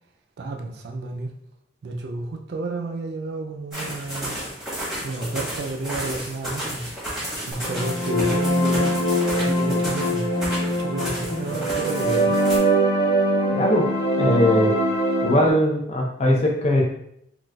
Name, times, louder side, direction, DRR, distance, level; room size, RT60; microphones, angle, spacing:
voice 1, 0.4-1.3 1.8-4.4 5.0-6.8 7.5-9.0 9.4-10.2 10.8-12.5, right 3 dB, 60° right, 4 dB, 0.4 m, -31 dB
sound 1, 3.7-12.6, equal, ahead, 1.0 m, -32 dB
sound 2, 7.6-15.5, right 1 dB, 65° left, 1.5 m, -22 dB
voice 2, 13.5-13.9 14.2-14.7 15.2-16.8, left 1 dB, 35° left, 0 dB, 0.5 m, -20 dB
3.9 x 2.3 x 2.3 m, 0.73 s
head